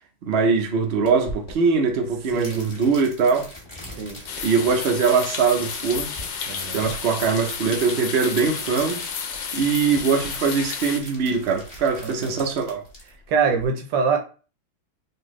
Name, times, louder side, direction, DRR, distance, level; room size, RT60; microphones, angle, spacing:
voice 1, 0.2-3.5 4.4-6.1 6.7-9.0 9.5-12.8, right 5 dB, 55° right, 0.7 m, -22 dB
sound 1, 1.1-13.7, left 1 dB, 15° left, 1.5 m, -42 dB
voice 2, 2.3-2.7 4.0-4.2 6.5-6.9 12.0-12.4 13.3-14.2, right 5 dB, 85° right, 1.5 m, -24 dB
sound 2, 4.3-11.0, left 6 dB, 80° left, 1.3 m, -32 dB
4.3 x 2.7 x 3.1 m
omnidirectional pair, 2.0 m